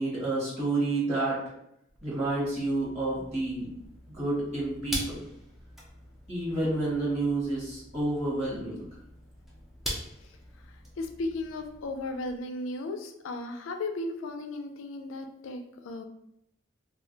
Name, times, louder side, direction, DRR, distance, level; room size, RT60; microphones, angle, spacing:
voice 1, 0.0-1.5 2.0-3.8 4.1-5.2 6.3-8.9, right 2 dB, 30° right, -7 dB, 1.0 m, -29 dB
sound 1, 1.9-12.4, equal, ahead, 0.4 m, -43 dB
voice 2, 10.6-16.0, left 2 dB, 85° left, 6 dB, 0.4 m, -36 dB
2.3 x 2.1 x 3.8 m, 0.77 s
head